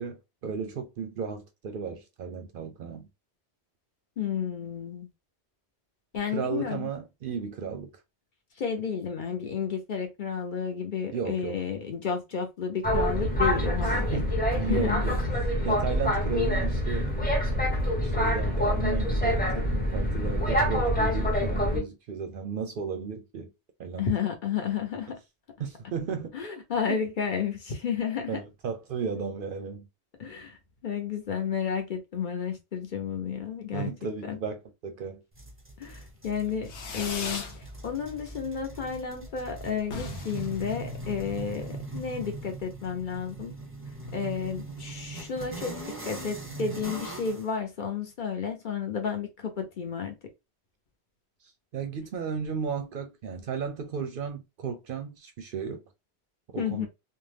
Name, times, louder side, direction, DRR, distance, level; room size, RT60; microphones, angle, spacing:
voice 1, 0.0-3.1 6.3-7.9 11.1-11.6 14.1-15.2 15.6-17.3 18.0-23.5 23.8-24.1 25.6-26.3 26.9-27.0 28.3-29.9 33.7-35.2 51.7-55.8 56.5-56.9, right 6 dB, 60° right, 0.6 m, -34 dB
voice 2, 4.2-5.1 6.1-6.9 8.6-14.2 14.7-15.0 24.0-25.1 26.3-28.4 30.2-33.9 34.2-34.4 35.8-43.5 44.1-50.2 56.6-56.9, left 6 dB, 55° left, 0.7 m, -32 dB
Boat Water vehicle, 12.8-21.8, equal, 10° left, 0.8 m, -26 dB
sound 1, 35.3-47.5, right 2 dB, 15° right, 0.5 m, -41 dB
Fireworks, 36.6-37.6 37.9-38.5 38.8-38.9 39.1-39.2 39.5-39.6 39.8-41.5, left 4 dB, 85° left, 1.0 m, -38 dB
2.5 x 2.2 x 3.3 m
omnidirectional pair, 1.1 m